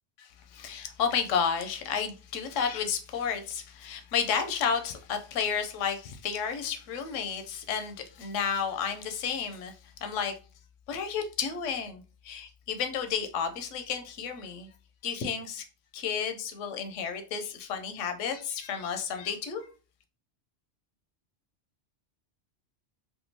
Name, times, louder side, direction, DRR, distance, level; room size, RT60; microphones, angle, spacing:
voice 1, 0.2-10.3 10.9-14.7 15.0-15.6 15.9-19.7, left 7 dB, 85° left, 0.9 m, -32 dB
3.6 x 2.4 x 2.6 m
omnidirectional pair, 1.2 m